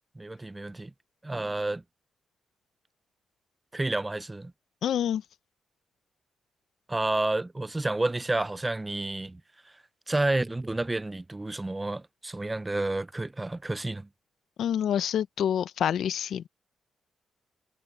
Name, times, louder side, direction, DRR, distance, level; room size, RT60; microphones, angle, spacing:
voice 1, 0.2-0.9 1.2-1.8 3.7-4.5 6.9-9.4 10.1-14.1, right 2 dB, 15° right, 0.4 m, -30 dB
voice 2, 4.8-5.2 14.6-16.5, left 9 dB, 75° left, 0.6 m, -27 dB
cardioid pair, 115°, 0 cm